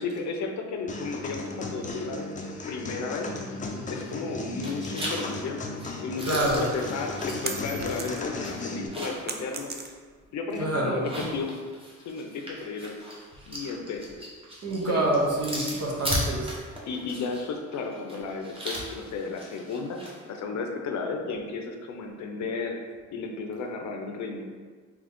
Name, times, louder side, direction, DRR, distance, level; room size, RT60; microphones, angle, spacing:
voice 1, 0.0-3.3 3.9-5.7 6.0-9.7 10.3-11.5 12.0-13.0 13.5-14.2 14.8-15.1 16.8-22.8 23.1-24.5, left 4 dB, 70° left, 3 dB, 0.6 m, -33 dB
sound 1, 0.9-8.9, left 2 dB, 25° left, 0.5 m, -36 dB
sound 2, 3.9-4.3 4.6-9.3 9.7-9.8 10.9-20.2, equal, 20° right, 1.1 m, -37 dB
voice 2, 6.2-6.7 10.6-11.1 14.6-16.6, right 1 dB, 55° right, -2 dB, 1.1 m, -26 dB
sound 3, 7.4-8.5 8.8-10.3, right 5 dB, 35° right, 0.4 m, -37 dB
3.8 x 3.0 x 3.5 m, 1.5 s
cardioid pair, 90°, 30 cm